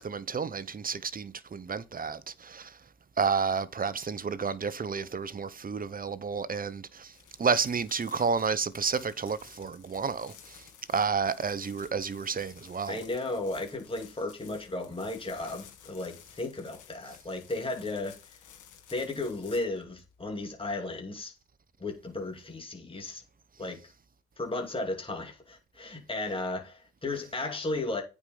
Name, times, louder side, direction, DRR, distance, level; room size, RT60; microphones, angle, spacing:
voice 1, 0.0-2.7 3.2-7.1 7.4-10.6 10.9-13.0, right 5 dB, 30° right, 0.8 m, -31 dB
sound 1, 7.1-21.1, left 9 dB, 80° left, 2.2 m, -54 dB
voice 2, 12.9-18.2 18.9-21.3 21.8-23.2 23.6-23.8 24.4-28.0, left 2 dB, 15° left, 2.6 m, -34 dB
9.0 x 4.9 x 5.5 m
cardioid pair, 90°, 30 cm